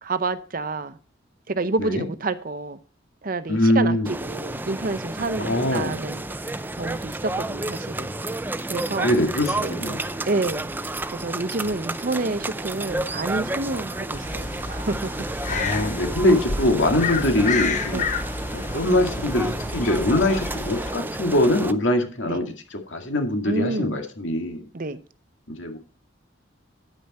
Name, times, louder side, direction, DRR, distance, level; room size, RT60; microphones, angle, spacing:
voice 1, 0.0-1.0 1.5-2.8 3.2-8.1 8.7-9.1 9.6-9.8 10.3-15.1 17.9-18.1 22.3-22.4 23.4-24.0 24.7-25.0, right 3 dB, 45° right, 0.7 m, -29 dB
voice 2, 3.5-4.1 5.4-6.0 9.0-10.1 15.5-18.0 18.5-24.6 25.5-25.8, left 1 dB, 80° left, 2.3 m, -23 dB
sound 1, 4.1-21.7, right 2 dB, 10° right, 0.5 m, -31 dB
sound 2, 14.1-20.9, left 4 dB, 40° left, 1.2 m, -30 dB
10.0 x 9.3 x 4.3 m
head